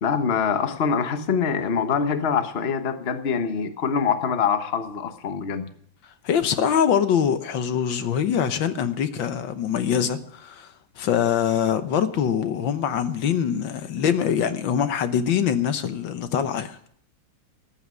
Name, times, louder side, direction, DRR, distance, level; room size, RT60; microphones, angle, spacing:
voice 1, 0.0-5.6, left 6 dB, 40° left, 1.1 m, -24 dB
voice 2, 6.2-10.7 11.0-16.8, left 8 dB, 80° left, 1.7 m, -23 dB
14.5 x 10.5 x 6.3 m
omnidirectional pair, 2.1 m